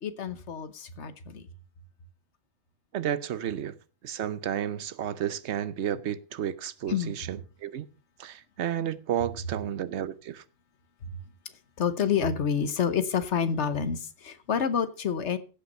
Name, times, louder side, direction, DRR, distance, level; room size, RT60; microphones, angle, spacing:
voice 1, 0.0-1.4 6.9-7.2 11.0-11.2 11.8-15.4, left 7 dB, 80° left, 1.3 m, -28 dB
voice 2, 2.9-3.8 4.0-7.9 8.2-10.4, right 10 dB, 75° right, 1.0 m, -32 dB
15.5 x 5.8 x 5.4 m
omnidirectional pair, 1.2 m